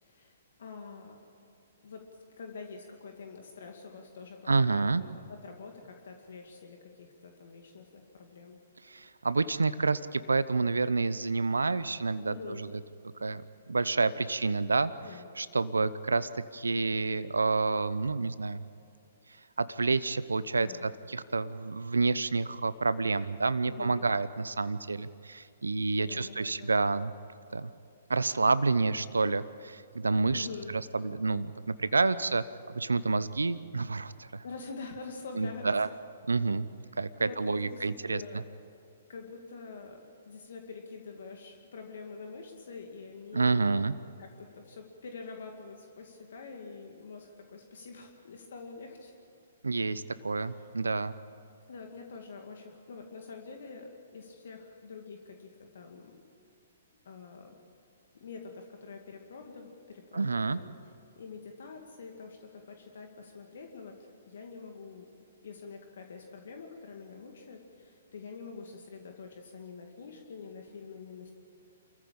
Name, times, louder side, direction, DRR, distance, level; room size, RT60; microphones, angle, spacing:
voice 1, 0.0-1.2 1.8-8.6 12.2-12.6 15.0-15.3 20.5-20.9 23.7-24.0 26.0-26.8 30.3-30.7 34.4-35.7 37.2-38.5 39.1-40.0 40.3-43.8 44.2-49.1 50.4-50.5 51.7-56.2 57.0-57.5 58.1-60.8 61.2-65.1 65.4-71.3, left 4 dB, 65° left, 3 dB, 2.3 m, -46 dB
voice 2, 4.5-5.0 8.9-12.7 13.2-13.4 13.7-14.9 15.4-18.6 19.6-27.1 27.5-27.7 28.1-30.5 30.9-32.4 32.7-34.4 35.4-35.9 36.3-36.7 37.0-38.4 43.3-43.9 49.6-51.2 60.1-60.6, right 3 dB, 85° right, 16 dB, 0.7 m, -29 dB
28.0 x 15.0 x 8.8 m, 2.6 s
figure-of-eight pair, 125°, 0 cm